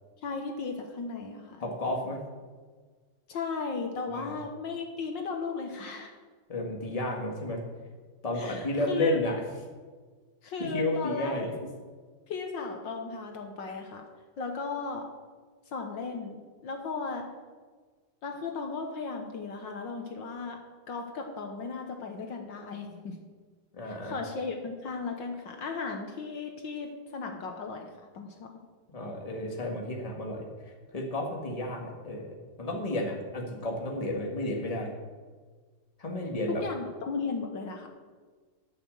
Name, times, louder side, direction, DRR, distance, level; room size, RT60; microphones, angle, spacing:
voice 1, 0.2-1.6 3.3-6.1 8.3-9.2 10.4-11.4 12.3-14.1 14.4-15.1 15.7-17.3 18.2-20.6 20.9-23.2 23.8-27.9 28.1-28.5 36.6-37.9, left 4 dB, 65° left, 3 dB, 1.8 m, -36 dB
voice 2, 1.6-2.2 4.1-4.4 6.5-7.6 8.2-9.4 10.6-11.5 23.7-24.2 28.9-34.9 36.0-36.6, left 1 dB, 20° left, 0 dB, 1.7 m, -32 dB
12.5 x 6.5 x 7.6 m, 1.5 s
omnidirectional pair, 2.3 m